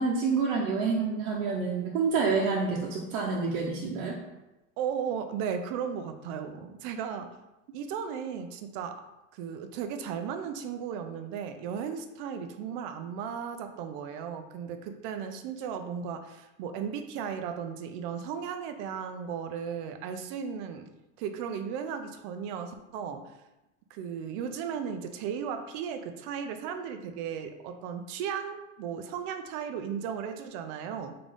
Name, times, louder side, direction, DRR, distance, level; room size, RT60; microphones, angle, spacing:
voice 1, 0.0-4.2, right 4 dB, 85° right, -2 dB, 0.9 m, -28 dB
voice 2, 4.8-7.4 7.7-9.0 9.3-20.9 21.2-23.3 23.9-31.2, right 7 dB, 50° right, 8 dB, 0.5 m, -35 dB
3.8 x 3.7 x 3.5 m, 0.98 s
supercardioid pair, 155°, 41 cm